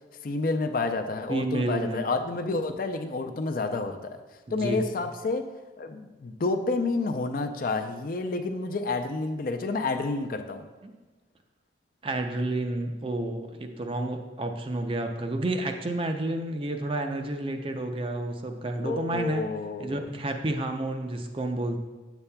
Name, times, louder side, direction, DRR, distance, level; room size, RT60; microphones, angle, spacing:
voice 1, 0.2-4.2 4.5-5.5 5.8-10.7 18.8-20.1, left 3 dB, 45° left, 6 dB, 0.4 m, -29 dB
voice 2, 1.3-2.0 4.5-4.8 10.8-10.9 12.0-19.5 19.8-21.8, right 1 dB, 30° right, 5 dB, 0.4 m, -30 dB
8.7 x 7.0 x 2.2 m, 1.2 s
head